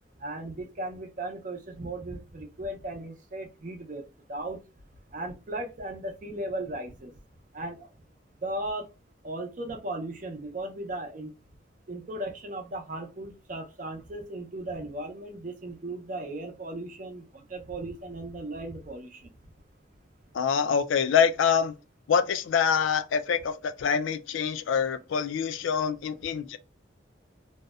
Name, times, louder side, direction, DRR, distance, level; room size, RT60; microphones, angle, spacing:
voice 1, 0.2-4.0 4.3-4.6 5.1-7.1 7.5-7.9 8.4-8.9 9.2-11.3 11.9-19.3, right 1 dB, 40° right, 0.5 m, -36 dB
voice 2, 20.3-21.7 22.1-26.6, left 7 dB, 85° left, 0.3 m, -25 dB
2.6 x 2.0 x 2.3 m
head